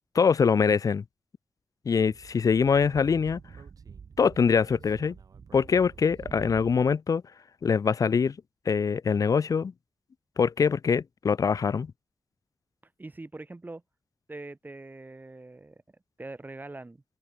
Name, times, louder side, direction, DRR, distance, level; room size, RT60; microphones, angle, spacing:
voice 1, 0.1-1.0 1.8-3.4 4.2-5.1 5.5-7.2 7.6-8.3 8.7-9.7 10.4-11.9, left 6 dB, 70° left, 1.0 m, -23 dB
Speech / Wind, 2.1-7.0, right 6 dB, 75° right, 3.0 m, -47 dB
voice 2, 13.0-13.8 14.3-17.0, right 2 dB, 30° right, 4.1 m, -43 dB
open air
cardioid pair, 65°, 6 cm